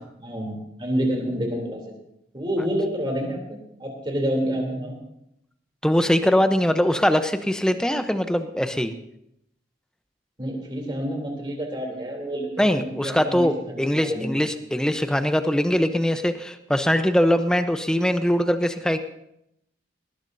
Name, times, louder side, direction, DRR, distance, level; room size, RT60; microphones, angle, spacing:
voice 1, 0.2-1.8 2.3-5.0 10.4-14.4, equal, 25° right, 1 dB, 3.3 m, -28 dB
voice 2, 5.8-8.9 12.6-19.0, equal, 5° left, 8 dB, 0.8 m, -22 dB
19.5 x 19.0 x 2.7 m, 0.79 s
head